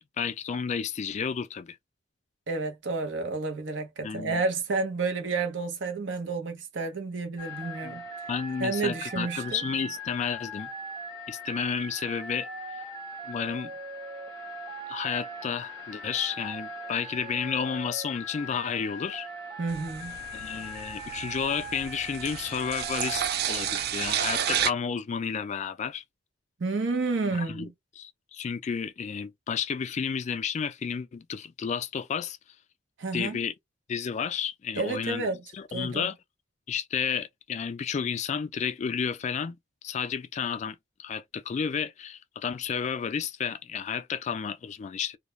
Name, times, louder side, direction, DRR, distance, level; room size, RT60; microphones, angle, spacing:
voice 1, 0.0-1.8 4.0-4.4 7.8-8.0 8.3-10.7 11.3-12.5 13.3-13.7 14.9-19.3 20.3-23.2 23.5-26.0 27.4-27.7 28.0-32.4 33.1-33.5 33.9-35.3 35.5-36.1 36.7-39.6 39.8-45.2, left 6 dB, 40° left, 0.3 m, -31 dB
voice 2, 2.5-8.0 8.6-9.6 19.6-20.2 26.6-27.7 33.0-33.4 34.7-35.4 35.7-36.1, right 3 dB, 80° right, 0.8 m, -30 dB
sound 1, 7.4-23.2, equal, 25° right, 0.9 m, -40 dB
sound 2, 19.7-24.7, right 9 dB, 55° right, 0.4 m, -31 dB
2.3 x 2.1 x 3.0 m
head